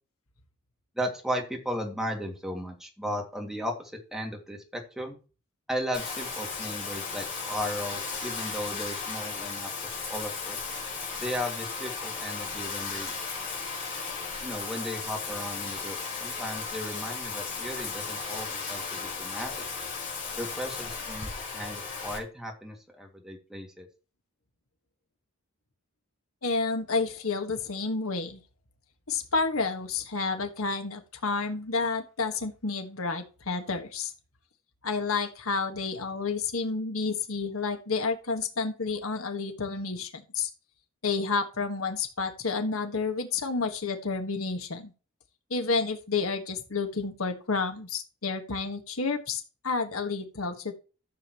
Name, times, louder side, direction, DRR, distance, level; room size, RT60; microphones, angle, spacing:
voice 1, 1.0-5.2 5.7-9.7 10.1-10.6 11.2-13.1 14.4-19.5 20.4-23.9, equal, ahead, 1 dB, 2.3 m, -35 dB
Bathtub (filling or washing), 5.9-22.2, left 5 dB, 40° left, 4.6 m, -35 dB
voice 2, 26.4-28.4 29.1-34.1 34.8-40.5 41.0-44.9 45.5-50.7, left 4 dB, 90° left, 5 dB, 1.6 m, -30 dB
14.0 x 7.3 x 3.1 m, 0.34 s
head